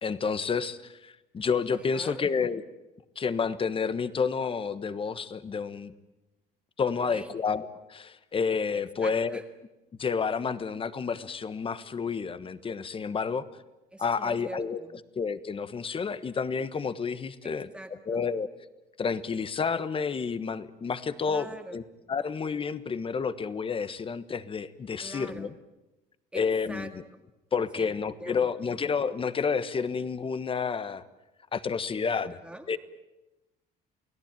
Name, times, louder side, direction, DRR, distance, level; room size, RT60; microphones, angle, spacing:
voice 1, 0.0-2.6 3.1-5.9 6.8-9.4 10.0-13.5 14.0-14.8 15.1-17.7 18.1-18.5 19.0-21.8 22.1-25.5 26.3-26.9 27.5-31.0 31.5-32.4 32.7-32.8, left 5 dB, 30° left, 14 dB, 1.4 m, -30 dB
voice 2, 1.7-2.3 7.1-7.3 9.0-9.4 13.9-15.0 17.4-18.2 21.2-21.8 25.0-25.5 26.3-26.9 27.8-28.5 32.2-32.8, right 1 dB, 5° right, 5 dB, 1.8 m, -43 dB
29.0 x 17.5 x 9.1 m, 1.0 s
cardioid pair, 110°, 17 cm